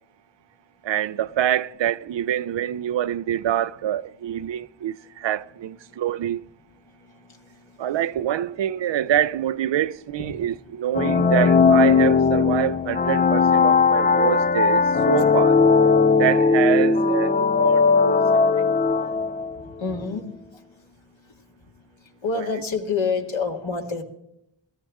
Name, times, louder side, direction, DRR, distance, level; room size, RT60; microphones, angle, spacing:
voice 1, 0.8-6.5 7.8-15.6 16.2-18.7 22.3-22.4, right 11 dB, 65° right, 0.5 m, -26 dB
voice 2, 7.3-7.9 10.2-10.4 19.6-20.3 22.2-24.0, left 4 dB, 70° left, 2.1 m, -28 dB
sound 1, 10.9-19.6, left 5 dB, 20° left, 0.4 m, -18 dB
17.5 x 14.0 x 3.6 m
cardioid pair, 45°, 48 cm